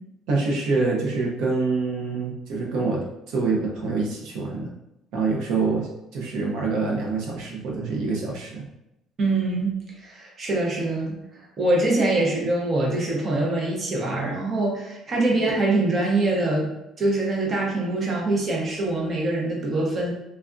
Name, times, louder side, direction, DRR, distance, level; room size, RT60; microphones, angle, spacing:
voice 1, 0.3-4.7 5.1-8.6 15.3-15.4, right 3 dB, 75° right, -2 dB, 0.7 m, -26 dB
voice 2, 9.2-11.1 11.6-20.1, right 2 dB, 30° right, -2 dB, 0.7 m, -24 dB
3.3 x 2.3 x 2.5 m, 0.87 s
cardioid pair, 150°, 0 cm